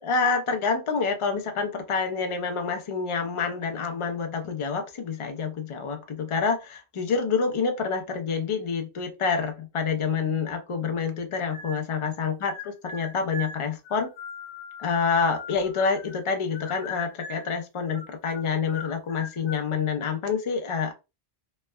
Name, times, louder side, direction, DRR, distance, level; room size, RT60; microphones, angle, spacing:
voice 1, 0.0-14.1 14.8-20.9, left 5 dB, 50° left, 6 dB, 0.4 m, -27 dB
sound 1, 11.5-12.1 12.4-16.3 16.5-17.5 17.9-19.7, left 3 dB, 80° left, 0.9 m, -41 dB
3.1 x 2.1 x 2.2 m, 0.27 s
omnidirectional pair, 1.2 m